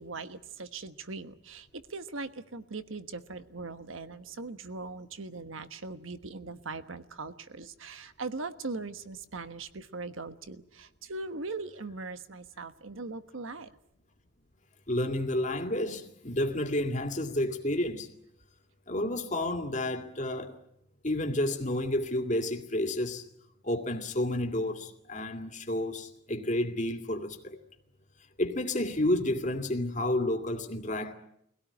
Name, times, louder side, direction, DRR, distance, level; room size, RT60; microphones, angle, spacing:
voice 1, 0.0-13.7, right 3 dB, 75° right, 1.3 m, -40 dB
voice 2, 14.9-18.1 18.9-20.6 21.0-23.3 23.6-27.6 28.4-31.1, left 1 dB, 35° left, 2.3 m, -30 dB
24.0 x 17.5 x 9.9 m
head